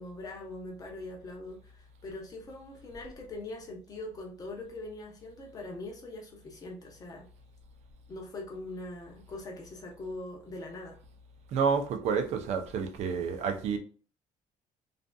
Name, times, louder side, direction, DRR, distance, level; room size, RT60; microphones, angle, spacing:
voice 1, 0.0-7.3 8.1-11.0, left 2 dB, 30° left, 0.7 m, -42 dB
voice 2, 11.5-13.8, right 6 dB, 55° right, 0.5 m, -29 dB
2.6 x 2.5 x 2.2 m
cardioid pair, 150°, 13 cm